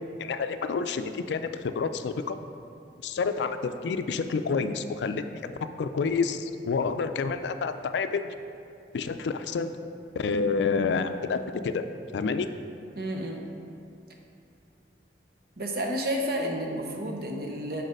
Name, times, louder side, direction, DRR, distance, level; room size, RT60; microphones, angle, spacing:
voice 1, 0.2-2.4 3.0-5.5 5.8-8.2 8.9-9.7 10.2-11.8 12.1-12.5, left 5 dB, 80° left, 9 dB, 0.3 m, -28 dB
voice 2, 13.0-13.4 15.6-17.8, equal, 60° right, 1 dB, 0.8 m, -31 dB
6.4 x 4.1 x 5.2 m, 2.6 s
head